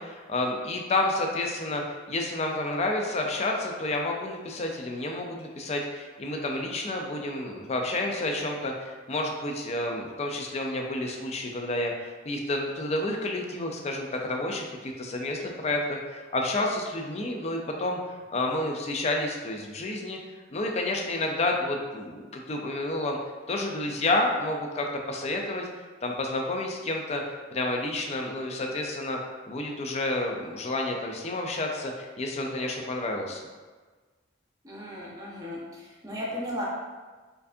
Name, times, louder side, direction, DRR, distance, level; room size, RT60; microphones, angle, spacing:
voice 1, 0.0-20.2 20.5-23.2 23.5-25.7 26.0-29.2 29.5-33.4, left 2 dB, 35° left, 2 dB, 0.4 m, -30 dB
voice 2, 34.6-35.6 36.0-36.6, equal, 20° right, -5 dB, 0.7 m, -35 dB
4.4 x 2.6 x 2.6 m, 1.4 s
head